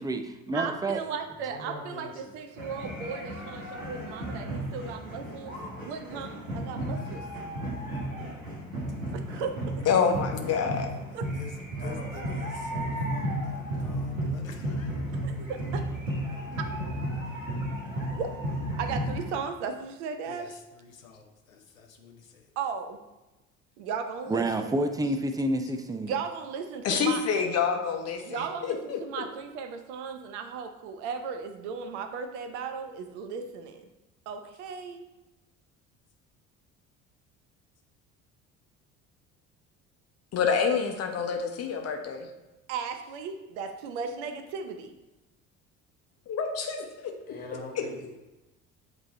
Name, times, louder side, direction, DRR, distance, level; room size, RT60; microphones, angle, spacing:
voice 1, 0.0-1.0 24.3-26.1, right 1 dB, 10° right, 6 dB, 0.5 m, -28 dB
voice 2, 0.5-5.5 5.9-7.2 9.4-9.5 11.1-11.3 15.2-15.8 18.1-18.3 18.8-20.6 22.6-23.0 23.8-24.7 26.1-27.2 28.2-33.9 34.3-35.0 42.7-44.9, right 6 dB, 60° right, 7 dB, 0.7 m, -36 dB
voice 3, 1.5-2.3 11.8-13.1 47.3-48.1, left 2 dB, 20° left, 0 dB, 1.4 m, -43 dB
sound 1, 2.6-19.3, equal, 85° right, 1.3 m, -33 dB
voice 4, 9.9-10.9 26.8-29.2 40.3-42.3 46.3-47.1 47.7-47.8, left 6 dB, 40° left, 4 dB, 1.0 m, -27 dB
voice 5, 11.3-15.1 20.3-22.4, left 5 dB, 85° left, 4 dB, 0.7 m, -49 dB
8.1 x 3.2 x 4.1 m, 1.0 s
figure-of-eight pair, 55°, 39 cm